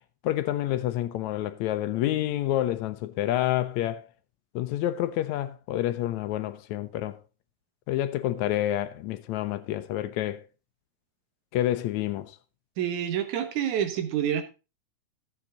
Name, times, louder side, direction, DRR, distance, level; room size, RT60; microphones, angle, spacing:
voice 1, 0.2-4.0 4.6-7.2 7.9-10.4 11.5-12.4, left 13 dB, 80° left, 1.9 m, -28 dB
voice 2, 12.8-14.4, right 9 dB, 75° right, 2.6 m, -27 dB
13.0 x 7.3 x 3.8 m
omnidirectional pair, 3.4 m